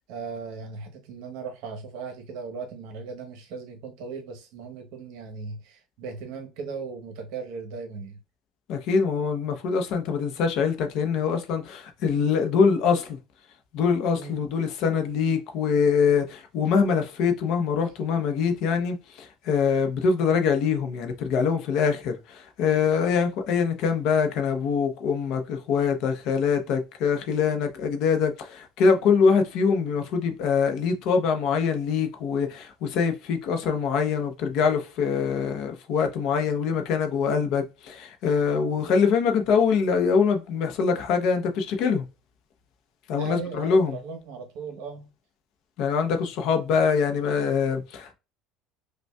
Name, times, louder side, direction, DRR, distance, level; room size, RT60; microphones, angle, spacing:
voice 1, 0.1-8.2 14.1-14.4 38.7-39.0 39.3-39.5 43.1-45.1, right 5 dB, 65° right, 1.0 m, -37 dB
voice 2, 8.7-13.2 13.7-42.1 43.1-44.0 45.8-48.1, left 6 dB, 55° left, 0.7 m, -24 dB
5.1 x 2.2 x 2.3 m
cardioid pair, 170°, 0 cm